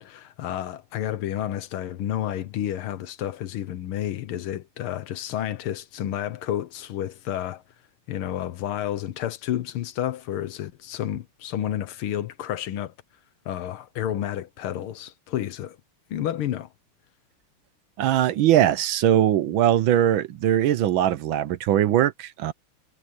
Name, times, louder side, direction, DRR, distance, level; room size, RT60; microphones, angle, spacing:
voice 1, 0.0-7.6 8.1-12.9 13.5-15.8 16.1-16.7, left 11 dB, 75° left, 1.8 m, -30 dB
voice 2, 18.0-22.5, right 11 dB, 70° right, 1.5 m, -21 dB
omnidirectional pair, 2.4 m